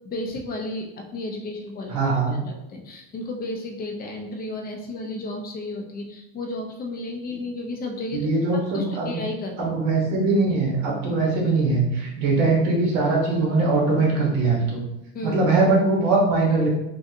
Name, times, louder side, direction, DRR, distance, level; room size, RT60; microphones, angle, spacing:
voice 1, 0.0-2.0 2.3-9.7 15.1-15.4, left 2 dB, 30° left, 3 dB, 0.7 m, -33 dB
voice 2, 1.9-2.4 8.1-9.2 9.6-14.8 15.2-16.7, right 3 dB, 65° right, -2 dB, 1.3 m, -21 dB
3.9 x 2.4 x 2.7 m, 0.88 s
supercardioid pair, 105°, 30 cm